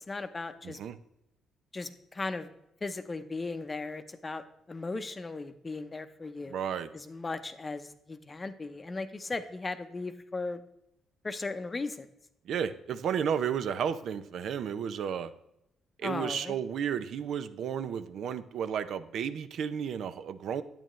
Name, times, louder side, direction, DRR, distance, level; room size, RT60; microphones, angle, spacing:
voice 1, 0.1-0.8 1.7-2.5 2.8-6.6 6.9-10.6 11.2-12.1 16.0-16.6, left 3 dB, 25° left, 10 dB, 0.7 m, -37 dB
voice 2, 0.6-1.0 6.5-6.9 12.5-15.3 16.0-20.6, right 8 dB, 70° right, 11 dB, 0.5 m, -32 dB
8.9 x 8.8 x 3.1 m, 0.82 s
cardioid pair, 95°, 0 cm